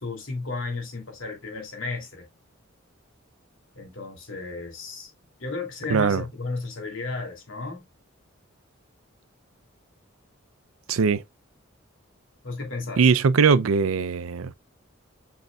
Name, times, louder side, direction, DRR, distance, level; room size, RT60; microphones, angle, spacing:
voice 1, 0.0-2.3 3.7-5.1 5.4-7.8 12.4-13.0, left 3 dB, 70° left, 2.7 m, -33 dB
voice 2, 5.9-6.2 10.9-11.2 13.0-14.5, right 5 dB, 85° right, 0.5 m, -20 dB
6.6 x 6.5 x 2.3 m
head